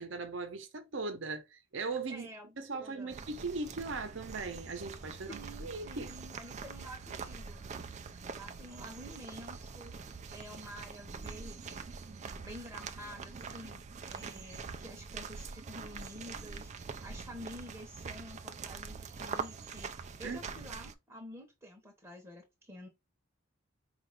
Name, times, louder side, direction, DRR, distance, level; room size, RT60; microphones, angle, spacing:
voice 1, 0.0-2.3 2.6-6.1 20.2-20.6, right 3 dB, 65° right, 0.8 m, -39 dB
voice 2, 2.1-3.2 5.3-7.6 8.3-9.9 10.3-11.8 12.2-16.7 17.0-22.9, equal, 15° right, 0.9 m, -49 dB
sound 1, 3.1-20.9, right 5 dB, 35° right, 0.4 m, -44 dB
4.8 x 2.5 x 3.3 m
head